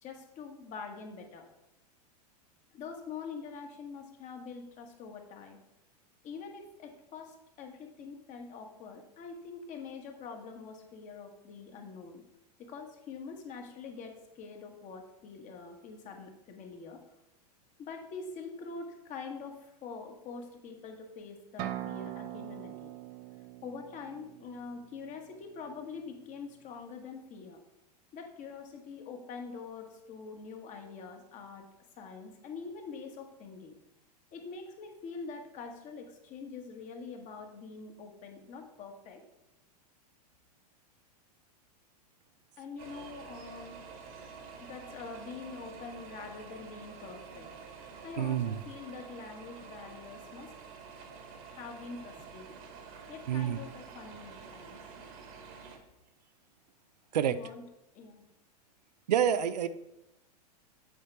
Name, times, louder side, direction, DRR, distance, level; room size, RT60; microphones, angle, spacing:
voice 1, 0.0-1.5 2.7-5.6 6.2-12.2 12.6-17.0 17.8-22.9 23.6-27.6 28.1-31.6 32.0-33.8 34.3-39.2 42.6-43.8 44.6-47.5 48.0-50.5 51.4-52.6 53.1-54.8 57.2-57.6 57.9-58.2, left 5 dB, 35° left, 4 dB, 1.4 m, -45 dB
sound 1, 21.6-25.3, right 13 dB, 40° right, 0.6 m, -42 dB
sound 2, 42.8-55.8, right 5 dB, 60° right, 1.7 m, -48 dB
voice 2, 48.2-48.6 53.3-53.6 57.1-57.4 59.1-59.7, right 9 dB, 80° right, 13 dB, 0.5 m, -28 dB
8.5 x 4.3 x 4.5 m, 0.91 s
hypercardioid pair, 105°, 21 cm